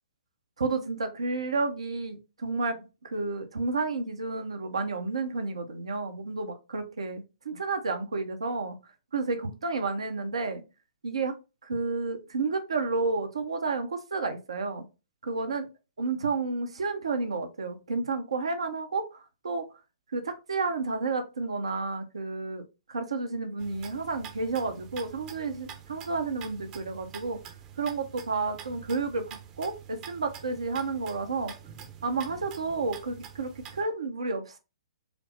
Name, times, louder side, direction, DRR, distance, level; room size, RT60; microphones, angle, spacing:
voice 1, 0.6-8.7 9.1-10.6 11.0-11.3 11.6-14.8 15.2-15.7 16.0-19.7 20.1-27.4 27.8-31.5 32.0-34.6, right 3 dB, 70° right, 7 dB, 0.7 m, -31 dB
sound 1, 23.6-33.8, right 8 dB, 25° right, 0.7 m, -46 dB
5.0 x 2.0 x 3.1 m, 0.29 s
figure-of-eight pair, 120°, 3 cm